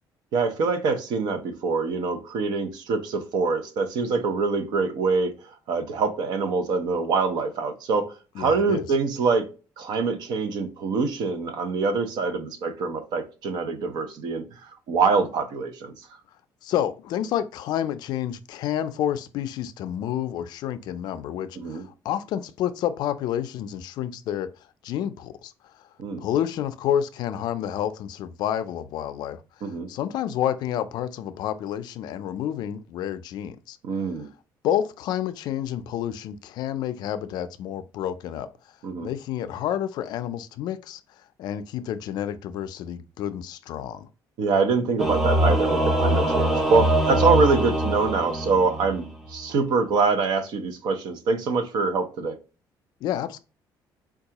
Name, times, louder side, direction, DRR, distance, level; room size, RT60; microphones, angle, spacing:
voice 1, 0.3-5.4 5.7-9.5 9.8-15.9 21.6-21.9 26.0-26.2 29.6-29.9 33.8-34.3 38.8-39.1 44.4-52.4, right 4 dB, 65° right, 0.7 m, -25 dB
voice 2, 8.4-8.8 16.6-24.5 24.8-25.5 26.2-29.4 29.9-33.8 34.6-38.5 39.0-41.0 41.4-44.1 53.0-53.4, left 10 dB, 65° left, 0.4 m, -29 dB
Singing / Musical instrument, 45.0-49.1, right 1 dB, 5° right, 0.5 m, -23 dB
4.6 x 2.3 x 2.8 m
cardioid pair, 165°, 8 cm